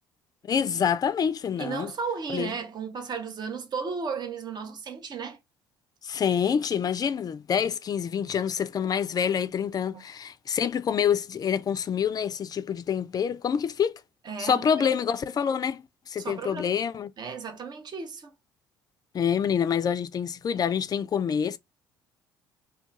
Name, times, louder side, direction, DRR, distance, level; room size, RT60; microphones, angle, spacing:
voice 1, 0.5-1.9 2.3-2.5 6.0-14.0 14.4-17.1 19.1-21.6, left 7 dB, 35° left, 0.3 m, -27 dB
voice 2, 1.6-5.4 9.9-10.0 14.3-14.9 16.2-16.7 17.2-18.3, right 5 dB, 40° right, 0.8 m, -34 dB
2.3 x 2.2 x 3.9 m
hypercardioid pair, 55°, 11 cm